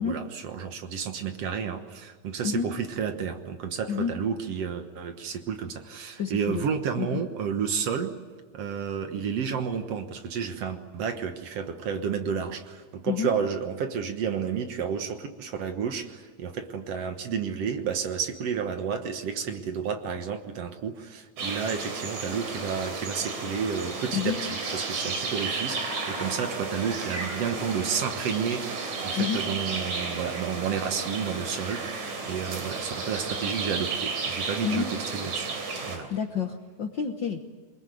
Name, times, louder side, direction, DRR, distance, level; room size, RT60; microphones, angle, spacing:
voice 1, 0.0-8.2 8.5-34.9 35.1-35.5 35.8-36.1, right 6 dB, 60° right, 7 dB, 2.3 m, -31 dB
voice 2, 6.2-6.6 7.0-7.2 13.1-13.3 24.1-24.4 29.1-29.4 34.6-34.9 36.1-37.4, left 7 dB, 55° left, 5 dB, 1.4 m, -29 dB
sound 1, 21.4-36.0, right 4 dB, 75° right, 4.5 m, -33 dB
23.5 x 21.5 x 9.3 m, 1.5 s
omnidirectional pair, 3.3 m